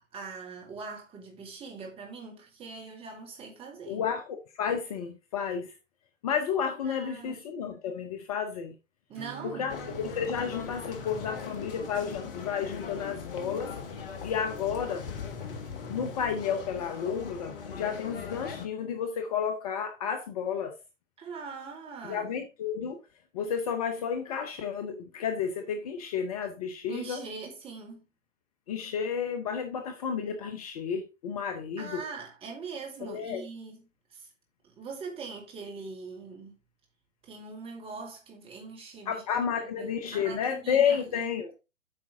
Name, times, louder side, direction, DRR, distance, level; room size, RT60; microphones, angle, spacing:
voice 1, 0.0-4.0 6.8-7.4 9.1-9.7 21.2-22.4 26.9-28.0 31.8-33.8 34.1-34.3 34.6-36.5 37.2-39.2 39.7-41.3, right 4 dB, 15° right, 2.3 m, -42 dB
voice 2, 3.9-5.8 6.2-8.7 9.4-13.7 14.2-15.1 15.9-20.8 22.0-23.0 23.3-27.2 28.7-32.0 33.0-33.4 39.1-41.5, left 7 dB, 30° left, 0.8 m, -31 dB
Acoustic guitar / Strum, 9.1-15.4, right 10 dB, 40° right, 4.2 m, -51 dB
sound 1, 9.7-18.7, left 6 dB, 45° left, 1.4 m, -40 dB
8.6 x 5.9 x 3.6 m
figure-of-eight pair, 125°, 39 cm